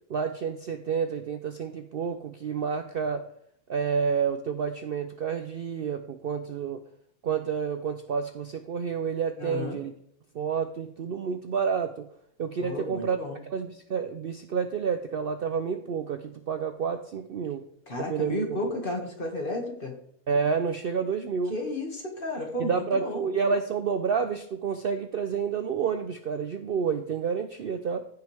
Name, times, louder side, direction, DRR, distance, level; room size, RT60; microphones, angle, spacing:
voice 1, 0.1-3.3 3.7-6.8 7.2-9.9 10.3-12.1 12.4-13.2 13.5-17.6 18.1-18.7 20.3-21.5 22.6-28.1, right 6 dB, 55° right, 8 dB, 0.7 m, -29 dB
voice 2, 9.4-9.8 12.6-13.4 17.9-19.9 21.5-23.3, left 2 dB, 40° left, 2 dB, 2.1 m, -33 dB
15.0 x 6.3 x 3.4 m, 0.71 s
omnidirectional pair, 1.5 m